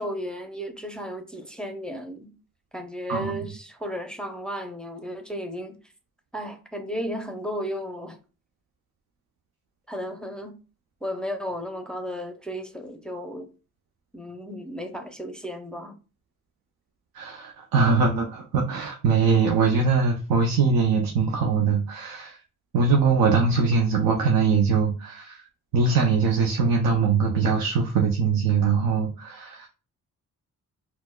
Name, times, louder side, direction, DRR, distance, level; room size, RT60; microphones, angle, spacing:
voice 1, 0.0-2.3 2.7-5.8 6.3-8.2 9.9-10.6 11.0-13.5 14.1-16.0, equal, 5° left, 0.5 m, -34 dB
voice 2, 3.1-3.4 17.1-22.4 22.7-25.4 25.7-29.7, right 5 dB, 85° right, 0.6 m, -22 dB
4.3 x 2.0 x 2.2 m
cardioid pair, 70°, 34 cm